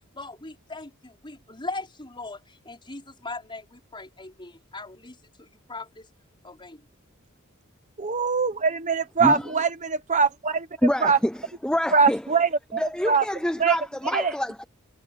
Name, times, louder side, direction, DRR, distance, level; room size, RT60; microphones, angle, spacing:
voice 1, 0.1-6.1 6.4-6.8, left 3 dB, 20° left, 5.3 m, -39 dB
voice 2, 8.0-10.7 11.0-11.2 11.9-13.2 13.6-13.8 14.1-14.3, right 5 dB, 35° right, 1.0 m, -22 dB
voice 3, 9.2-9.6 10.8-12.2 12.7-14.6, left 1 dB, 5° left, 0.5 m, -26 dB
head